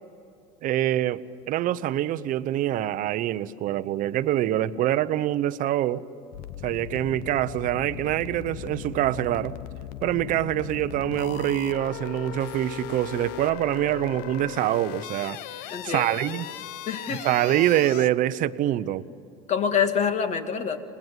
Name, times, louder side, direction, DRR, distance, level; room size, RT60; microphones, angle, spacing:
voice 1, 0.6-6.0 6.6-9.6 10.0-15.4 15.8-16.4 17.1-19.0, right 13 dB, 50° right, 0.9 m, -25 dB
sound 1, 6.3-18.1, left 12 dB, 65° left, 0.9 m, -38 dB
voice 2, 15.7-16.4 16.9-17.3 19.5-20.8, left 7 dB, 40° left, 2.3 m, -26 dB
28.0 x 20.0 x 9.3 m
supercardioid pair, 100°, 18 cm